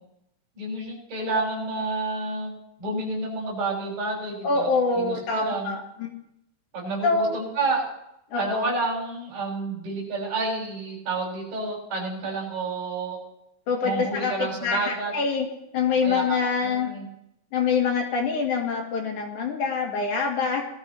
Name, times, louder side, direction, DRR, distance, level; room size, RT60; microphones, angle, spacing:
voice 1, 0.5-4.7 4.9-5.8 6.7-7.8 8.4-13.2 13.8-15.1 16.0-16.4 16.6-17.1, right 3 dB, 50° right, -4 dB, 7.6 m, -30 dB
voice 2, 4.4-6.1 7.0-7.4 8.3-8.7 13.7-15.5 15.7-16.9 17.5-20.6, left 5 dB, 60° left, 0 dB, 2.8 m, -25 dB
20.0 x 13.0 x 3.2 m, 0.80 s
omnidirectional pair, 4.5 m